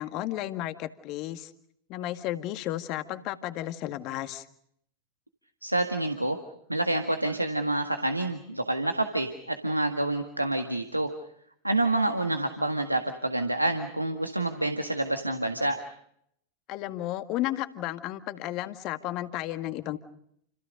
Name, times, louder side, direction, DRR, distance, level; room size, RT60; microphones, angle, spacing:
voice 1, 0.0-1.5 1.9-4.5 16.7-20.0, left 14 dB, 40° left, 9 dB, 1.9 m, -33 dB
voice 2, 5.6-6.4 6.7-11.1 11.6-15.8, right 2 dB, 85° right, 6 dB, 1.8 m, -28 dB
30.0 x 28.0 x 5.3 m, 0.72 s
figure-of-eight pair, 90°, 0 cm